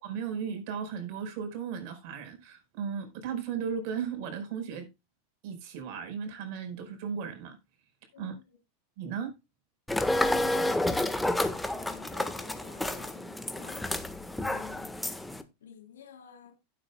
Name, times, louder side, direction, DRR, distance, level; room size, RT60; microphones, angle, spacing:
voice 1, 0.0-4.9 5.4-7.6 8.2-8.3 9.0-9.3, right 7 dB, 55° right, 4.7 m, -36 dB
voice 2, 8.1-8.6 10.1-15.2 15.6-16.6, left 7 dB, 80° left, 3.9 m, -52 dB
sound 1, 9.9-15.4, left 1 dB, 5° left, 1.5 m, -30 dB
16.0 x 8.1 x 2.3 m
hypercardioid pair, 95°, 0 cm